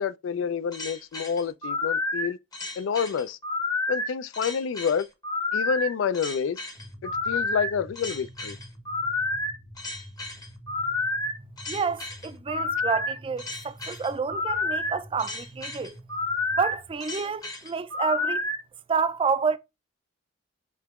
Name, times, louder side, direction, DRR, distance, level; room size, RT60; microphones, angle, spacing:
voice 1, 0.0-2.4 2.8-3.4 3.9-5.1 5.5-6.6 7.0-8.6, left 6 dB, 85° left, 0.3 m, -28 dB
sound 1, 0.7-18.6, left 2 dB, 20° left, 0.8 m, -30 dB
sound 2, 6.8-17.0, equal, 35° left, 1.1 m, -47 dB
voice 2, 11.7-15.9 16.6-18.4 18.9-19.6, right 5 dB, 30° right, 0.3 m, -29 dB
5.3 x 2.9 x 2.3 m
head